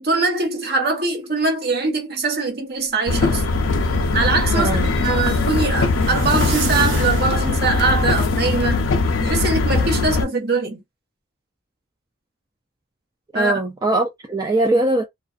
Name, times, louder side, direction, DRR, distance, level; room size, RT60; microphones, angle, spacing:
voice 1, 0.0-3.4 4.1-8.9 9.2-10.8 13.3-13.6, right 3 dB, 50° right, 0.9 m, -22 dB
sound 1, 3.1-10.2, left 3 dB, 75° left, 0.5 m, -20 dB
sound 2, 3.7-8.4, right 1 dB, 80° right, 0.9 m, -30 dB
voice 2, 4.5-4.9 13.3-15.1, right 2 dB, 20° right, 0.3 m, -21 dB
2.4 x 2.4 x 2.3 m
head